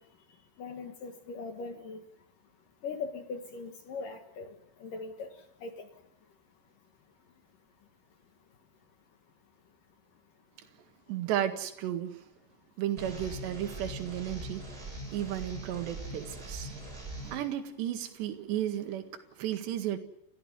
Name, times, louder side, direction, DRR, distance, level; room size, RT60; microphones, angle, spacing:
voice 1, 0.6-2.0 2.8-4.6 4.8-5.3 5.6-5.9, left 4 dB, 60° left, 2.5 m, -40 dB
voice 2, 11.1-12.2 12.8-14.6 15.1-16.7 17.2-20.0, right 11 dB, 65° right, 3.8 m, -34 dB
sound 1, 13.0-17.4, right 1 dB, 15° right, 7.9 m, -41 dB
29.5 x 14.5 x 9.6 m
omnidirectional pair, 5.7 m